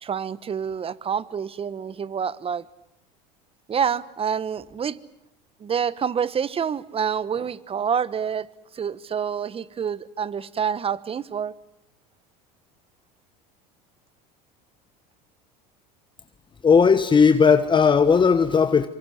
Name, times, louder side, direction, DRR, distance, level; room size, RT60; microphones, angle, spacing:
voice 1, 0.0-2.6 3.7-5.0 5.6-8.5 8.7-11.5, right 7 dB, 30° right, 1.2 m, -27 dB
voice 2, 16.6-18.9, left 6 dB, 25° left, 1.1 m, -17 dB
26.0 x 24.0 x 7.8 m
hypercardioid pair, 90°, 20 cm